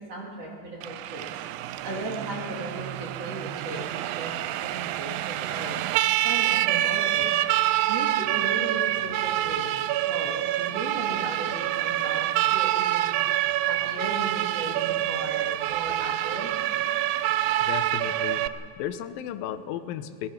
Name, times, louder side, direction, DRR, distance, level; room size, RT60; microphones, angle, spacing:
voice 1, 0.1-1.2 1.8-5.8 6.2-7.3 7.9-9.8 10.1-13.1 13.7-16.6, right 2 dB, 45° right, -2 dB, 2.5 m, -36 dB
Siren, 0.8-18.5, right 14 dB, 80° right, 2.5 m, -26 dB
voice 2, 17.6-18.5 18.8-20.3, left 10 dB, 75° left, 10 dB, 2.2 m, -34 dB
25.5 x 18.0 x 5.8 m, 2.2 s
omnidirectional pair, 4.9 m